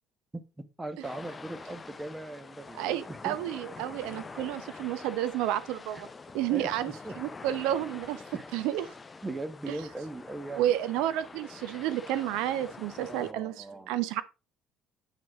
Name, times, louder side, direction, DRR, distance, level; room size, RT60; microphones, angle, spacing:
voice 1, 0.3-3.4 5.9-6.0 6.5-7.2 8.3-8.5 9.2-10.7 13.1-14.0, right 2 dB, 15° right, 1.1 m, -39 dB
sound 1, 1.0-13.3, left 4 dB, 25° left, 0.5 m, -46 dB
voice 2, 2.8-6.1 6.3-8.2 8.5-8.9 9.7-9.8 10.6-14.2, right 12 dB, 65° right, 0.6 m, -31 dB
9.1 x 6.2 x 2.4 m
hypercardioid pair, 55°, 0 cm